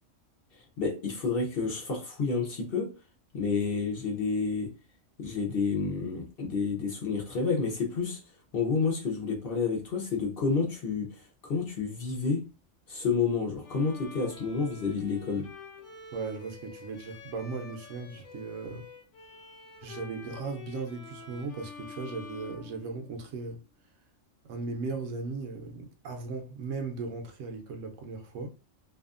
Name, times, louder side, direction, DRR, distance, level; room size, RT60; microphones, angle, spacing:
voice 1, 0.5-2.9 3.3-4.7 5.2-8.2 8.5-12.5 12.9-15.5, left 4 dB, 55° left, 0.8 m, -30 dB
Bowed string instrument, 13.6-23.4, left 4 dB, 85° left, 1.0 m, -48 dB
voice 2, 16.1-18.9 19.8-23.6 24.4-28.5, right 4 dB, 75° right, 0.9 m, -37 dB
2.7 x 2.4 x 2.4 m
omnidirectional pair, 1.4 m